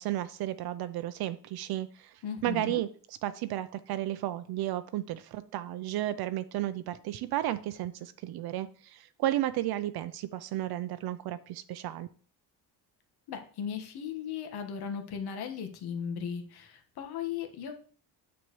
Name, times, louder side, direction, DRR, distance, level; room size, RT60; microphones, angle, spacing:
voice 1, 0.0-12.1, right 14 dB, 70° right, 0.6 m, -33 dB
voice 2, 2.2-2.8 13.3-17.7, left 7 dB, 70° left, 1.6 m, -37 dB
9.1 x 7.3 x 3.1 m
cardioid pair, 145°, 39 cm